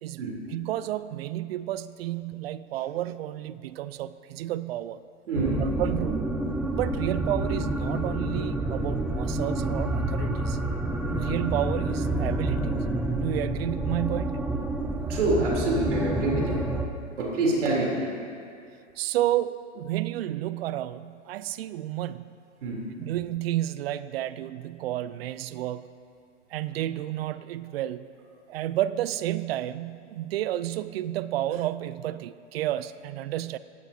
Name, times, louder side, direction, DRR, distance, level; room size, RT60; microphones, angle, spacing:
voice 1, 0.5-5.0 5.6-6.3 6.7-10.6 11.2-12.8 13.2-14.5 19.0-22.3 23.0-25.9 26.5-28.1 28.5-33.6, right 13 dB, 55° right, 16 dB, 0.5 m, -31 dB
sound 1, 5.3-16.9, right 2 dB, 5° right, 0.3 m, -28 dB
voice 2, 5.3-5.7 11.0-11.2 15.1-16.7 17.2-18.0 22.6-22.8, right 2 dB, 70° right, -2 dB, 3.5 m, -26 dB
18.0 x 14.5 x 2.8 m, 2.3 s
hypercardioid pair, 105°, 37 cm